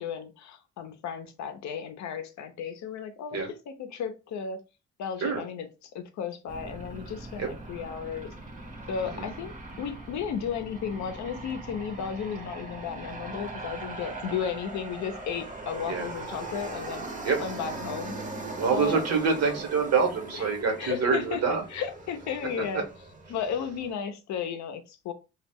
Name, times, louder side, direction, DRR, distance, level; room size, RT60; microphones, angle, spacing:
voice 1, 0.0-3.4 3.7-4.6 5.0-5.7 5.9-8.3 8.9-9.5 9.8-17.1 17.4-18.2 18.7-19.0 20.8-21.4 21.7-22.8 23.3-25.1, left 7 dB, 70° left, 8 dB, 0.6 m, -34 dB
Aircraft, 6.5-23.9, right 2 dB, 25° right, 0.8 m, -40 dB
voice 2, 18.5-21.6 22.6-22.8, right 5 dB, 60° right, 3 dB, 1.1 m, -26 dB
2.3 x 2.0 x 3.5 m, 0.29 s
cardioid pair, 90°, 30 cm